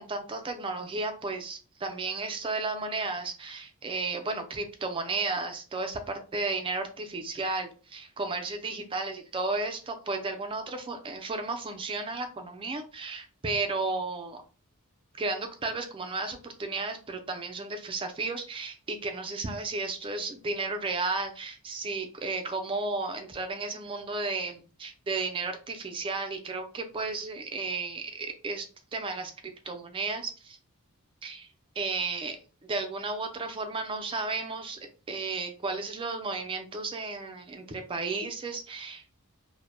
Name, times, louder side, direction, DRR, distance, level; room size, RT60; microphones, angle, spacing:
voice 1, 0.0-14.4 15.2-28.7 28.9-29.3 29.6-30.6 31.2-31.5 31.8-39.0, right 3 dB, 25° right, 6 dB, 0.3 m, -33 dB
2.1 x 2.0 x 3.1 m, 0.37 s
head